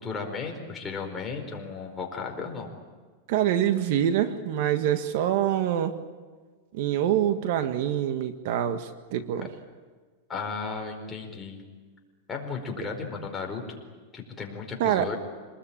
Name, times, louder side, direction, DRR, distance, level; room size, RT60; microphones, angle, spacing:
voice 1, 0.0-2.7 10.3-11.6 12.3-13.8 14.1-15.2, left 4 dB, 15° left, 1 dB, 4.8 m, -35 dB
voice 2, 3.3-6.0 6.7-9.5 14.8-15.1, right 10 dB, 60° right, 9 dB, 1.7 m, -25 dB
27.0 x 20.5 x 8.9 m, 1.4 s
supercardioid pair, 145°, 0 cm